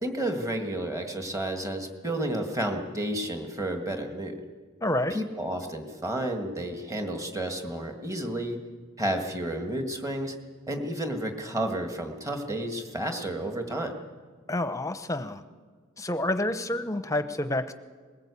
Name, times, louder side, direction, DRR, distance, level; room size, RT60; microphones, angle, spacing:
voice 1, 0.0-4.4 5.1-8.6 9.0-10.4 10.7-14.0, right 1 dB, 15° right, 4 dB, 1.9 m, -31 dB
voice 2, 4.8-5.2 14.5-15.4 16.0-17.7, left 1 dB, 15° left, 10 dB, 0.8 m, -28 dB
20.5 x 19.0 x 8.5 m, 1.5 s
head